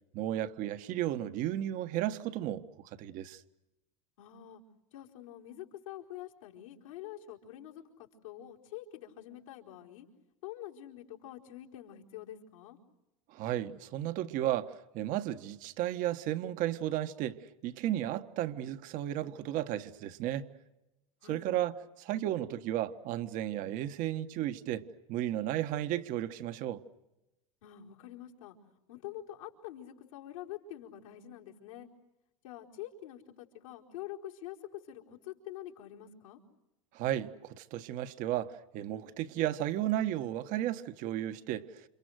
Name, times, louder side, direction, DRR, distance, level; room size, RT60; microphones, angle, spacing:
voice 1, 0.1-3.4 13.3-20.5 21.3-26.8 36.9-41.9, right 12 dB, 50° right, 1.5 m, -34 dB
voice 2, 4.2-4.6 4.9-10.1 10.4-12.8 21.2-21.5 27.6-28.6 28.9-31.9 32.4-36.4, left 12 dB, 80° left, 4.5 m, -46 dB
29.5 x 27.5 x 6.5 m
supercardioid pair, 110°, 17 cm